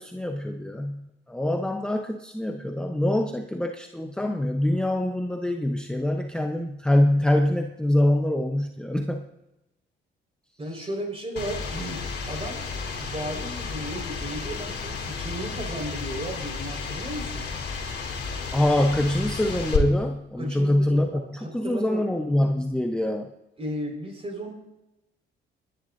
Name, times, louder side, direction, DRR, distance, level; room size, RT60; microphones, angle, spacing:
voice 1, 0.0-9.3 10.7-10.9 18.5-23.3, left 1 dB, 5° left, 4 dB, 0.8 m, -24 dB
voice 2, 10.6-17.5 20.4-22.0 23.6-24.5, right 1 dB, 30° right, 2 dB, 4.7 m, -35 dB
sound 1, 11.4-19.8, left 5 dB, 60° left, 3.2 m, -32 dB
25.0 x 10.5 x 2.6 m, 0.96 s
cardioid pair, 90°, 20 cm